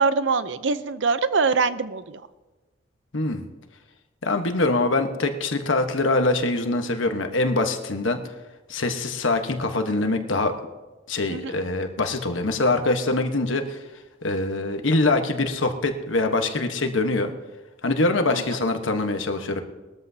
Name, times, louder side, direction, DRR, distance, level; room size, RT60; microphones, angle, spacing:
voice 1, 0.0-2.2 11.3-11.6 18.3-18.6, right 4 dB, 65° right, 13 dB, 0.6 m, -24 dB
voice 2, 4.2-8.2 8.7-10.5 11.1-13.8 14.2-17.3 17.8-19.6, left 2 dB, 80° left, 6 dB, 1.2 m, -24 dB
21.0 x 13.5 x 2.8 m, 1.2 s
head